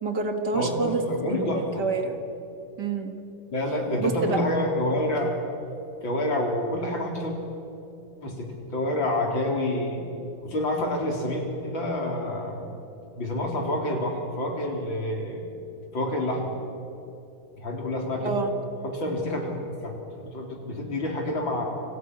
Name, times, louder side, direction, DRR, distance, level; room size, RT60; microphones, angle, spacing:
voice 1, 0.0-1.0 1.3-2.2 2.8-3.1 3.7-4.4 18.2-18.6, right 4 dB, 55° right, 5 dB, 2.5 m, -28 dB
voice 2, 0.5-1.8 3.5-5.4 6.0-7.3 8.2-10.1 10.4-12.6 13.2-15.5 15.9-16.5 17.6-18.3 18.8-19.6 19.8-21.7, left 1 dB, 70° left, 0 dB, 4.6 m, -28 dB
29.0 x 27.0 x 6.2 m, 3.0 s
omnidirectional pair, 2.2 m